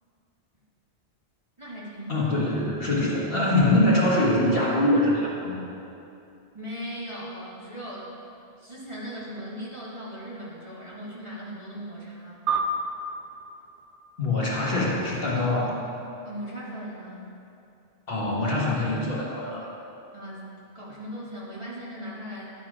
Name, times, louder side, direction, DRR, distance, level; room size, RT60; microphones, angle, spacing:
voice 1, 1.6-2.3 6.5-8.1 8.6-12.4 16.2-17.2 20.1-22.5, equal, 25° right, -7 dB, 1.5 m, -38 dB
voice 2, 2.1-5.6 14.2-15.8 18.1-19.7, left 1 dB, 55° left, -5 dB, 1.6 m, -23 dB
sound 1, 12.5-15.2, right 3 dB, 85° right, 0.9 m, -32 dB
11.0 x 4.4 x 4.9 m, 2.7 s
omnidirectional pair, 1.2 m